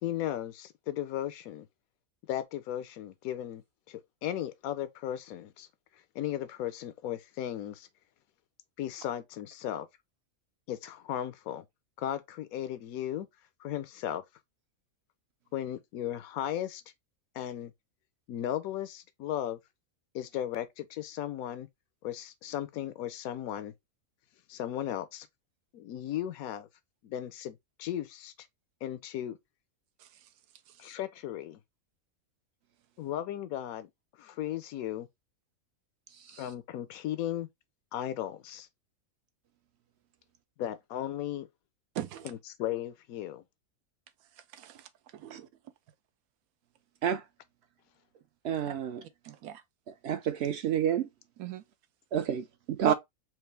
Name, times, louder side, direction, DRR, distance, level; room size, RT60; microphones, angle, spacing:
voice 1, 0.0-1.7 2.3-5.7 6.1-7.9 8.8-9.9 10.7-11.6 12.0-13.3 13.6-14.2 15.5-16.8 17.3-17.7 18.3-19.6 20.1-21.7 22.0-23.7 24.5-25.3 25.7-26.7 27.0-28.3 28.8-29.4 30.8-31.6 33.0-33.9 34.2-35.1 36.4-37.5 37.9-38.7 40.6-41.5 42.2-43.4, left 11 dB, 85° left, 1.0 m, -36 dB
voice 2, 41.9-42.3 44.5-45.5 48.7-48.8 49.2-49.6 51.4-51.6 52.8-52.9, right 11 dB, 85° right, 1.0 m, -38 dB
voice 3, 48.4-49.0 50.0-51.1 52.1-52.9, right 9 dB, 65° right, 0.7 m, -29 dB
4.5 x 2.4 x 3.2 m
omnidirectional pair, 1.5 m